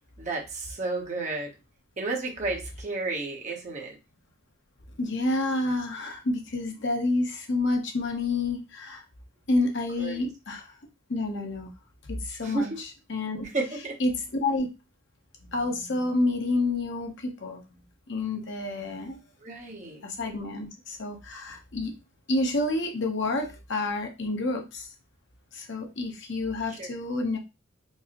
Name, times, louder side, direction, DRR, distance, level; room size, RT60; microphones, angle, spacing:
voice 1, 0.2-1.5 2.0-4.0 10.0-10.2 12.4-12.8 13.5-14.0 19.4-20.0 26.8-26.9, right 3 dB, 35° right, 0 dB, 0.9 m, -32 dB
voice 2, 5.0-9.0 9.5-10.8 11.1-11.7 12.2-13.4 14.0-14.7 15.4-17.6 18.1-19.2 20.0-21.9 22.3-24.9 25.5-27.4, left 2 dB, 55° left, 3 dB, 0.8 m, -29 dB
4.6 x 2.0 x 2.9 m, 0.26 s
head